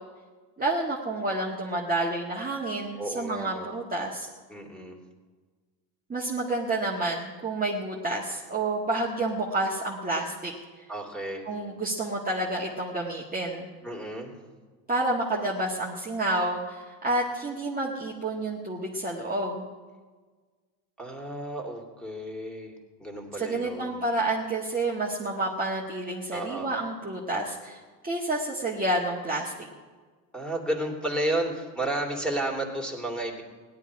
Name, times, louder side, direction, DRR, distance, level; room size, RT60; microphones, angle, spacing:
voice 1, 0.6-4.3 6.1-10.5 11.5-13.7 14.9-19.7 23.4-29.7, right 2 dB, 15° right, -4 dB, 1.8 m, -29 dB
voice 2, 3.0-3.7 4.5-5.0 10.9-11.5 13.8-14.3 21.0-22.7 23.0-24.0 26.3-26.7 30.3-33.4, right 1 dB, ahead, 1 dB, 2.8 m, -32 dB
17.0 x 11.5 x 4.8 m, 1.4 s
supercardioid pair, 95°, 49 cm